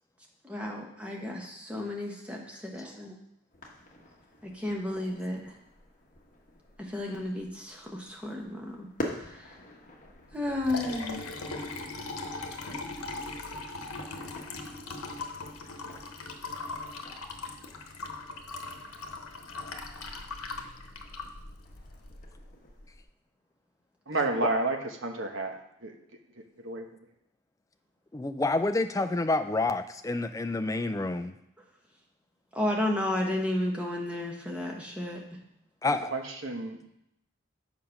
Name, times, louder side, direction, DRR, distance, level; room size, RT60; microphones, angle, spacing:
voice 1, 0.4-3.1 4.4-5.5 6.8-9.5 10.3-11.2 32.5-35.4, left 1 dB, 5° right, 0 dB, 1.1 m, -33 dB
sound 1, 3.5-23.0, left 1 dB, 35° left, 1.2 m, -47 dB
Liquid, 10.3-22.2, left 3 dB, 80° left, 1.0 m, -39 dB
voice 2, 24.1-25.6 25.8-25.9 26.6-26.9 35.9-36.9, right 2 dB, 60° right, 4 dB, 1.0 m, -31 dB
voice 3, 28.1-31.4 35.8-36.1, left 2 dB, 15° left, 8 dB, 0.3 m, -28 dB
7.5 x 5.0 x 5.9 m, 0.79 s
head